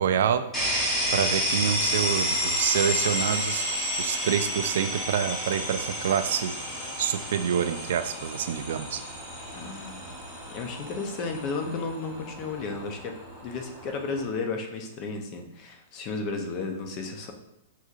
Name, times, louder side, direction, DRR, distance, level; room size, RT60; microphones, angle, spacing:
voice 1, 0.0-3.6 4.0-6.5 7.0-9.0, right 8 dB, 65° right, 10 dB, 0.3 m, -27 dB
sound 1, 0.5-14.2, equal, 10° left, 1.0 m, -31 dB
voice 2, 9.5-10.1 10.5-13.1 13.4-17.3, left 4 dB, 30° left, 4 dB, 0.6 m, -33 dB
6.2 x 2.7 x 2.4 m, 0.84 s
hypercardioid pair, 160°, 0 cm